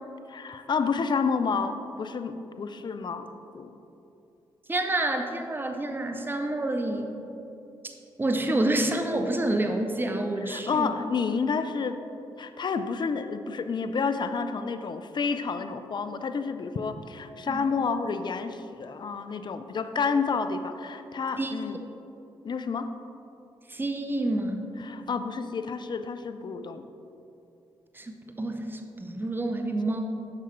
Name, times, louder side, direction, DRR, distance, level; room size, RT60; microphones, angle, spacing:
voice 1, 0.3-3.8 10.4-12.0 12.4-21.8 22.4-22.9 24.8-26.9, left 5 dB, 40° left, 10 dB, 0.4 m, -30 dB
voice 2, 4.7-7.1 7.8-7.9 8.2-10.9 17.5-17.7 21.4-21.5 23.7-24.6 27.9-30.0, right 1 dB, 20° right, 5 dB, 0.7 m, -28 dB
7.4 x 5.6 x 3.2 m, 2.9 s
hypercardioid pair, 40°, 12 cm